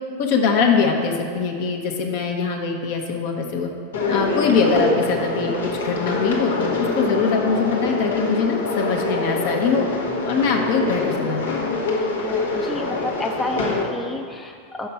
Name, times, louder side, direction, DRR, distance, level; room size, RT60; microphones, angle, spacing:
voice 1, 0.2-3.7 4.1-5.5 5.8-9.9 10.3-11.6, left 5 dB, 60° left, 2 dB, 0.8 m, -22 dB
sound 1, 3.9-13.8, left 2 dB, 90° left, 1.0 m, -25 dB
voice 2, 12.2-14.9, left 2 dB, 10° left, 2 dB, 0.4 m, -30 dB
5.6 x 4.6 x 5.4 m, 2.2 s
hypercardioid pair, 110°, 0 cm